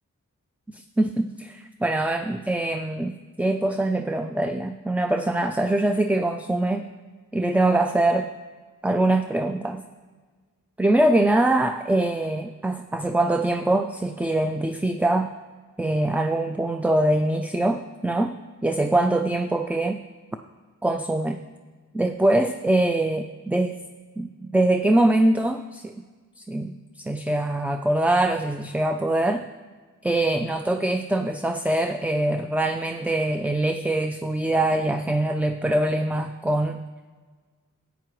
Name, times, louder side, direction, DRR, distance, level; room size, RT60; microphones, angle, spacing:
voice 1, 0.7-6.9 7.3-8.3 8.8-9.8 10.8-15.3 15.8-20.0 20.8-21.4 21.9-23.8 24.2-25.9 26.4-29.4 30.0-36.8, right 1 dB, 5° right, 6 dB, 0.4 m, -23 dB
13.5 x 9.2 x 3.1 m, 1.4 s
wide cardioid pair, 55°, 33 cm